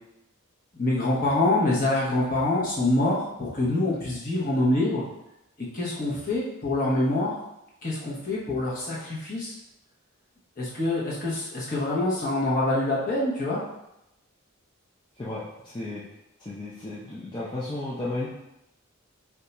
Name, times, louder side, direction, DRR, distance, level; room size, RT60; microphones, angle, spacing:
voice 1, 0.8-5.0 5.6-7.3 7.8-9.5 10.6-13.6, left 2 dB, 35° left, -6 dB, 0.9 m, -25 dB
voice 2, 16.4-18.3, left 2 dB, 20° left, -8 dB, 0.4 m, -33 dB
2.6 x 2.3 x 4.1 m, 0.87 s
head